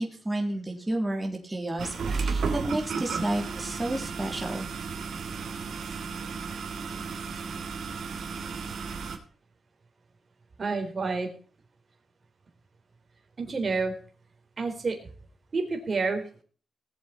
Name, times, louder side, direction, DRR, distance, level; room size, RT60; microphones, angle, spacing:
voice 1, 0.0-4.7, right 1 dB, 10° right, 1 dB, 3.6 m, -31 dB
sound 1, 1.8-9.2, right 5 dB, 70° right, 3.0 m, -33 dB
voice 2, 10.6-11.3 13.4-13.9 14.6-15.0 15.5-16.4, right 4 dB, 40° right, 4 dB, 3.8 m, -29 dB
19.0 x 8.1 x 4.4 m, 0.41 s
cardioid pair, 115°, 0 cm